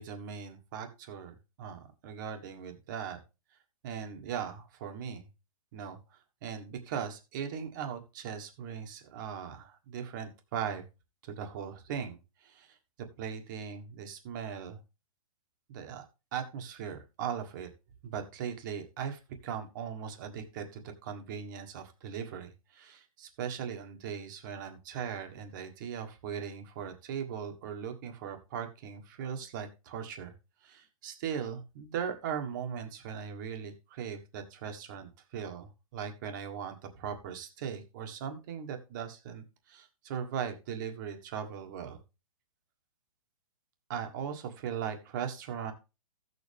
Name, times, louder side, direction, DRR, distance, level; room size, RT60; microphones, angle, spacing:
voice 1, 0.0-3.2 3.8-5.3 5.7-10.8 11.2-12.8 13.2-14.8 15.7-16.1 16.3-17.7 18.0-30.3 30.6-42.0 43.9-45.7, right 8 dB, 35° right, 5 dB, 1.6 m, -39 dB
14.5 x 6.8 x 3.5 m, 0.29 s
hypercardioid pair, 165°, 19 cm